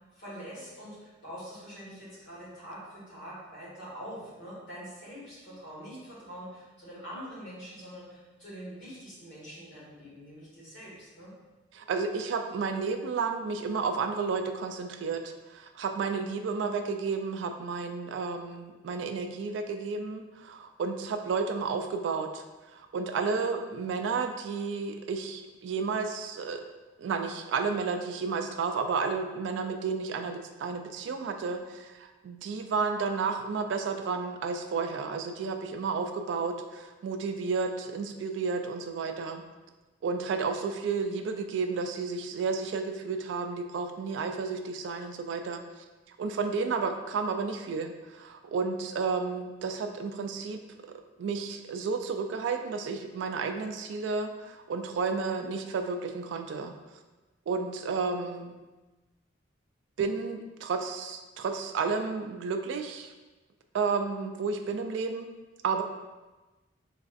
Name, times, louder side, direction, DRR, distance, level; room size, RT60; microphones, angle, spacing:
voice 1, 0.1-11.3, equal, 75° left, -8 dB, 1.4 m, -44 dB
voice 2, 11.7-22.4 22.7-26.6 27.0-39.4 40.0-45.6 46.1-50.6 51.2-56.7 57.5-58.5 60.0-63.1 63.7-65.3 65.6-65.8, right 4 dB, 75° right, 6 dB, 0.3 m, -32 dB
4.0 x 2.5 x 2.4 m, 1.2 s
head